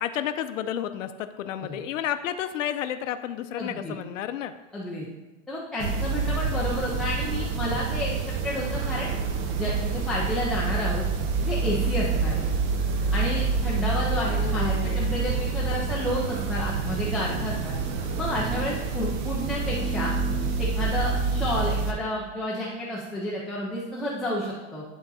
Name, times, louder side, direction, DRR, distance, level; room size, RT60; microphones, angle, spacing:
voice 1, 0.0-4.5 14.2-15.1, left 10 dB, 80° left, 10 dB, 0.6 m, -31 dB
voice 2, 3.6-4.0 4.7-5.1 5.5-8.1 8.4-9.1 9.6-11.0 11.4-12.4 13.1-17.8 18.2-20.1 20.6-24.8, left 1 dB, ahead, -6 dB, 0.4 m, -30 dB
sound 1, 5.8-21.9, right 4 dB, 40° right, 0.8 m, -27 dB
10.5 x 3.9 x 4.0 m, 1.1 s
supercardioid pair, 140°, 38 cm